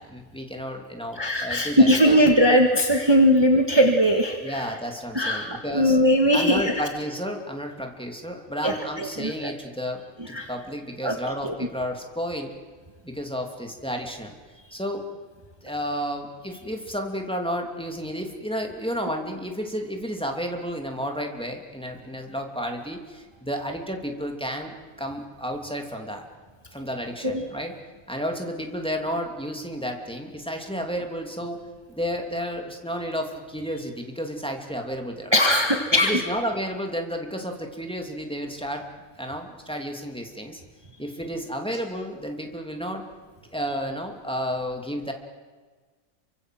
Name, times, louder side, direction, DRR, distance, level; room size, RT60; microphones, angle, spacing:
voice 1, 0.0-2.3 4.4-6.0 6.3-12.5 13.0-14.3 14.7-15.1 15.6-26.2 26.7-27.7 28.1-31.6 31.9-35.3 36.0-38.9 39.2-40.6 41.0-43.0 43.5-45.1, equal, 5° left, 2 dB, 2.8 m, -32 dB
voice 2, 1.2-4.7 5.1-6.7 8.6-9.5 10.3-10.5 11.0-11.2 11.4-11.5 27.2-27.4 35.3-36.2, equal, 20° right, 3 dB, 1.8 m, -20 dB
28.0 x 24.5 x 7.8 m, 1.4 s
omnidirectional pair, 1.4 m